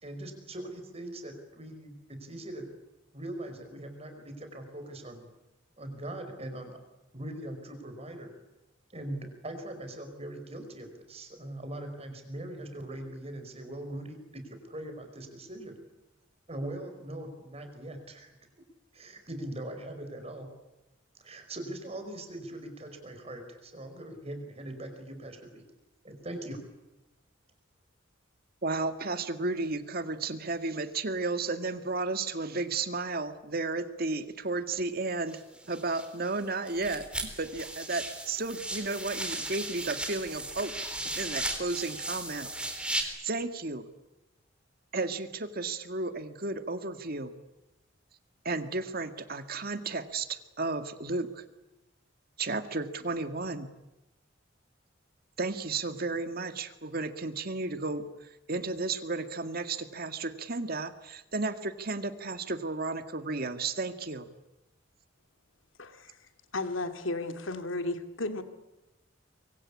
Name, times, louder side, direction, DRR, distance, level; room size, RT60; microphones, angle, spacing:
voice 1, 0.0-2.7 3.1-5.3 5.8-6.8 7.1-8.3 8.9-15.8 16.5-18.3 18.9-20.5 21.1-25.6 26.0-26.6, right 1 dB, 30° right, 6 dB, 5.1 m, -41 dB
voice 2, 28.6-35.4 35.7-40.7 41.2-43.9 44.9-47.4 48.4-51.4 52.4-53.7 55.4-64.3, right 3 dB, 50° right, 9 dB, 1.9 m, -33 dB
sound 1, 35.3-36.4 36.7-43.0, right 2 dB, 5° right, 3.6 m, -36 dB
voice 3, 65.8-66.2 66.5-68.4, left 2 dB, 75° left, 8 dB, 2.5 m, -34 dB
25.5 x 24.0 x 8.5 m, 0.98 s
head